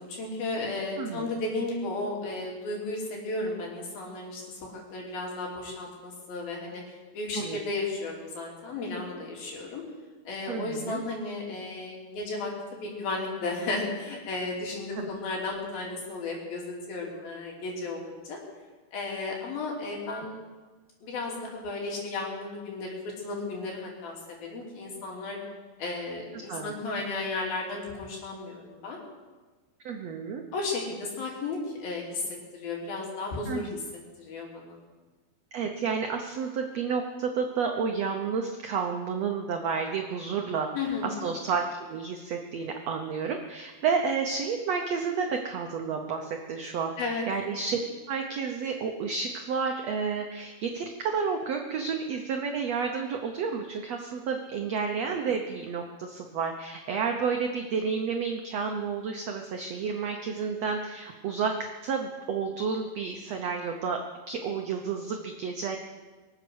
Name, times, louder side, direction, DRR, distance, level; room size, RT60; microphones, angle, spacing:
voice 1, 0.0-9.8 10.2-12.5 12.8-18.4 18.9-20.4 21.0-23.0 23.2-25.4 25.8-29.0 30.5-33.8 34.2-34.8 40.7-41.2 47.0-47.2, left 3 dB, 70° left, -2 dB, 4.7 m, -34 dB
voice 2, 1.0-1.3 7.3-7.6 10.5-11.0 15.0-15.1 26.3-26.7 29.8-30.4 33.5-33.8 35.5-41.6 41.9-47.8 48.1-61.5 61.8-64.0 64.3-65.8, right 5 dB, 80° right, 3 dB, 1.4 m, -31 dB
24.0 x 8.1 x 6.3 m, 1.3 s
omnidirectional pair, 4.4 m